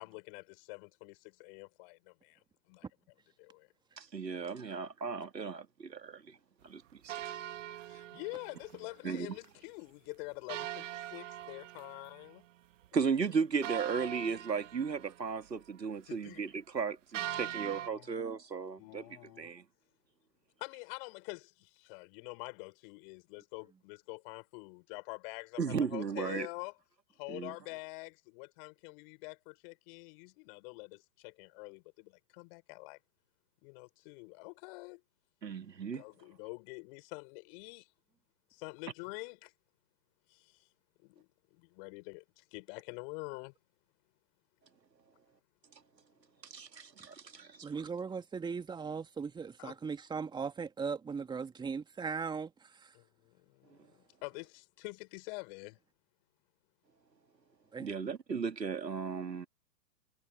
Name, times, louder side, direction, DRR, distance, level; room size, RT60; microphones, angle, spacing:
voice 1, 0.0-2.9 3.4-3.7 7.9-12.4 13.0-13.1 16.1-16.4 17.2-18.2 18.8-19.5 20.6-26.7 27.1-33.0 33.6-35.0 35.9-37.9 38.5-39.5 40.3-40.7 41.0-43.5 49.6-49.8 52.9-55.8, left 31 dB, 35° left, 4.7 m, -47 dB
voice 2, 4.0-6.4 6.6-7.1 9.0-9.3 12.9-19.0 19.4-19.6 25.6-26.5 27.3-27.5 35.4-36.0 46.4-47.7 57.8-59.5, right 5 dB, 85° right, 2.0 m, -35 dB
sound 1, 7.1-8.8 9.1-9.2 9.4-9.5 10.5-12.4 12.8-12.9 13.6-15.4 17.1-17.9, right 13 dB, 50° right, 1.4 m, -42 dB
voice 3, 47.6-53.0 57.7-57.9, right 5 dB, 10° right, 2.3 m, -38 dB
figure-of-eight pair, 120°, 49 cm